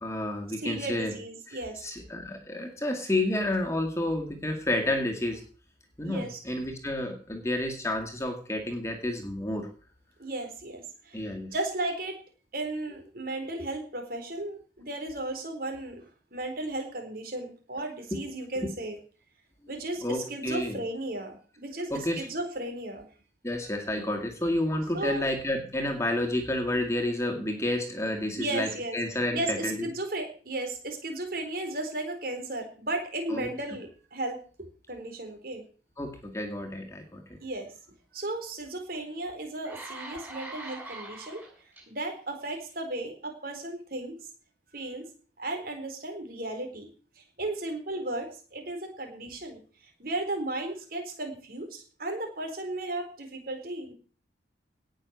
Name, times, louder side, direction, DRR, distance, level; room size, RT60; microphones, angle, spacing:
voice 1, 0.0-1.1 1.5-5.4 6.0-9.7 11.1-11.5 18.1-18.2 18.6-18.7 20.0-20.8 21.9-22.3 23.4-29.9 33.3-33.5 36.0-37.4, left 1 dB, 15° left, 3 dB, 2.2 m, -30 dB
voice 2, 0.6-1.8 6.0-6.6 10.2-12.2 12.5-19.0 19.7-23.1 24.9-25.3 28.4-29.0 29.3-35.6 37.4-37.7 38.1-41.4 41.9-44.2 44.7-45.0 45.4-46.9 47.2-49.6 50.0-53.9, right 2 dB, 55° right, 4 dB, 4.1 m, -35 dB
sound 1, 38.9-39.0 39.4-41.8 42.5-42.7, right 2 dB, 10° right, 6.4 m, -42 dB
18.0 x 6.5 x 6.4 m, 0.40 s
head